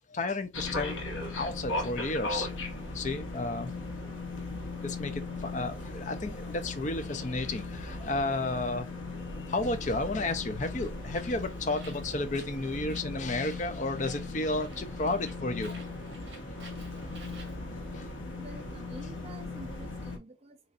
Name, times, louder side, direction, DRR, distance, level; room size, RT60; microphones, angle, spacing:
voice 1, 0.1-1.0 1.3-2.5 2.9-3.7 4.8-8.9 9.5-15.9 16.3-16.4 17.6-18.1, left 2 dB, 40° left, 0.6 m, -32 dB
sound 1, 0.5-20.2, left 2 dB, 80° left, 1.0 m, -38 dB
Bird, 11.0-17.6, right 3 dB, 65° right, 1.7 m, -54 dB
voice 2, 18.3-20.6, right 2 dB, 30° right, 0.6 m, -48 dB
4.0 x 3.2 x 2.5 m
head